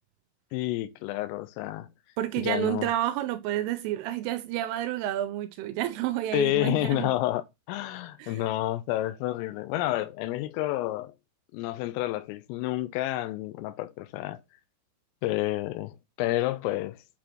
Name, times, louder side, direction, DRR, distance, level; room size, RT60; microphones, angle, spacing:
voice 1, 0.5-1.9 2.4-2.9 6.3-11.1 11.5-14.4 15.2-17.0, left 16 dB, 85° left, 3.3 m, -29 dB
voice 2, 2.2-7.1 8.2-8.4, right 13 dB, 80° right, 3.1 m, -30 dB
8.3 x 5.0 x 2.9 m
omnidirectional pair, 5.9 m